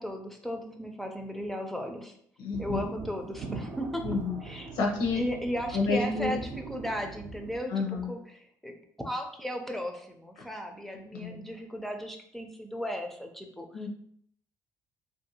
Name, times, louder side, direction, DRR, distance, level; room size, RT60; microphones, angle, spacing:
voice 1, 0.0-2.1 2.6-4.0 4.4-4.7 5.1-6.4 6.7-8.7 9.0-13.7, equal, 5° left, 3 dB, 0.4 m, -35 dB
voice 2, 2.4-2.8 4.0-4.4 4.7-5.2 5.7-6.3 7.7-8.1 11.1-11.4 13.7-13.9, left 4 dB, 90° left, 1 dB, 0.6 m, -29 dB
sound 1, 2.5-7.6, right 4 dB, 65° right, 0.4 m, -41 dB
2.6 x 2.5 x 2.7 m, 0.66 s
cardioid pair, 95°, 7 cm